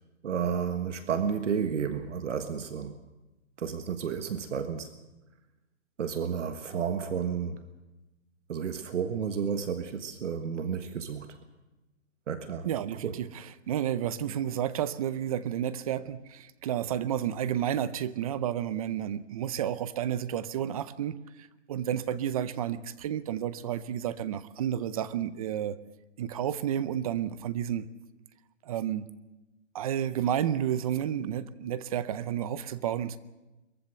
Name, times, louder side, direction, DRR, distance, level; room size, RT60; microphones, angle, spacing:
voice 1, 0.2-3.0 3.6-4.9 6.0-7.6 8.5-11.3 12.3-12.7 13.0-13.1, right 7 dB, 70° right, 8 dB, 1.7 m, -31 dB
voice 2, 12.6-25.8 26.2-27.9 28.6-29.1 29.7-33.2, right 10 dB, 30° right, 16 dB, 0.6 m, -31 dB
23.0 x 14.5 x 7.9 m, 1.1 s
hypercardioid pair, 155°, 37 cm